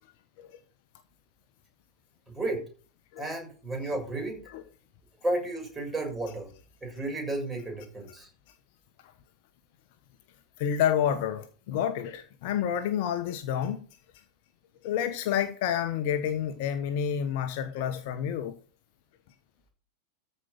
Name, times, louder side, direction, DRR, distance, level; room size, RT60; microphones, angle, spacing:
voice 1, 2.3-2.6 3.2-4.4 5.2-6.5 6.8-8.3, right 2 dB, 10° right, 6.6 m, -32 dB
voice 2, 10.6-13.8 14.8-18.5, left 9 dB, 50° left, 1.2 m, -29 dB
14.0 x 5.6 x 6.4 m
figure-of-eight pair, 90°, 0 cm